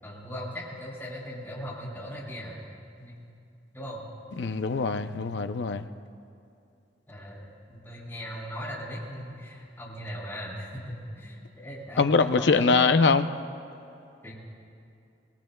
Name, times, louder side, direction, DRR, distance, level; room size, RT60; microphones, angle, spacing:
voice 1, 0.0-2.6 3.0-3.2 3.7-4.0 7.1-13.0 14.2-14.3, equal, 15° left, -5 dB, 4.5 m, -38 dB
voice 2, 4.4-5.9 12.0-13.3, left 4 dB, 70° left, 10 dB, 0.6 m, -23 dB
25.5 x 21.0 x 2.3 m, 2.6 s
head